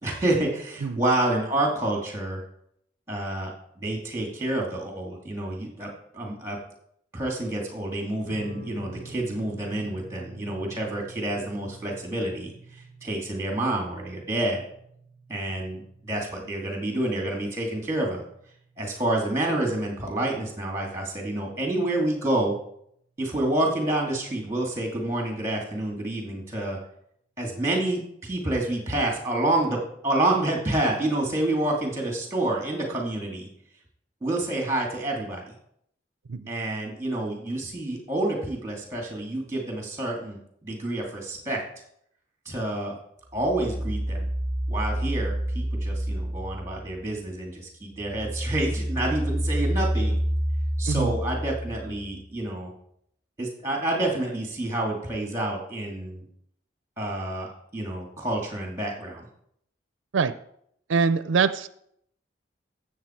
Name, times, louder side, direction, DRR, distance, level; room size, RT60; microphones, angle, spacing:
voice 1, 0.0-2.4 3.1-6.6 7.1-14.6 15.3-18.2 18.8-22.5 23.2-26.8 27.4-29.8 30.0-33.5 34.2-35.5 36.5-41.6 42.5-43.0 43.3-44.3 44.7-50.2 50.8-52.7 53.4-56.2 57.0-59.3, right 1 dB, 15° right, 1 dB, 2.6 m, -28 dB
sound 1, 8.2-20.8, right 2 dB, 80° left, 4.0 m, -48 dB
sound 2, 43.4-47.2 47.6-52.2, equal, 25° left, 4.6 m, -28 dB
voice 2, 60.9-61.7, right 5 dB, 85° right, 13 dB, 0.5 m, -23 dB
12.5 x 7.7 x 4.5 m, 0.70 s
head